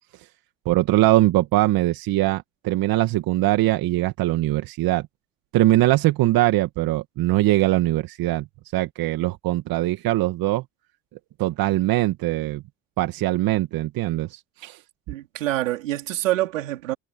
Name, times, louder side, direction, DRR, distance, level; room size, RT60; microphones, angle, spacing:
voice 1, 0.7-5.1 5.5-8.5 8.7-10.6 11.4-12.6 13.0-14.8, right 16 dB, 65° right, 2.1 m, -21 dB
voice 2, 15.1-16.9, right 15 dB, 90° right, 3.6 m, -26 dB
hypercardioid pair, 55°, 37 cm